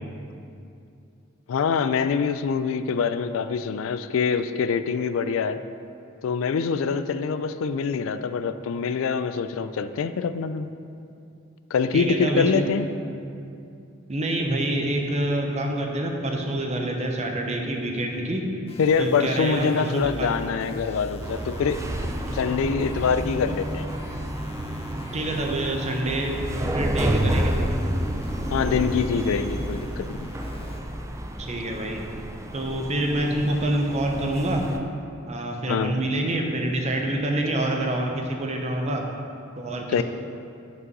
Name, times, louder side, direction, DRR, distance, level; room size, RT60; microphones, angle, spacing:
voice 1, 1.5-5.6 6.2-10.7 11.7-12.9 18.8-23.9 28.5-30.3 35.7-36.0 39.9-40.0, left 5 dB, 90° left, 11 dB, 0.3 m, -25 dB
voice 2, 11.9-12.6 14.1-18.5 19.0-20.3 25.1-27.7 31.4-32.0 32.5-34.6 35.3-39.1 39.6-40.0, right 1 dB, 35° right, 2 dB, 0.8 m, -26 dB
sound 1, 18.7-30.8, equal, 30° left, 0.7 m, -39 dB
sound 2, 21.2-34.8, right 1 dB, 15° right, 0.4 m, -30 dB
6.2 x 5.4 x 5.3 m, 2.6 s
head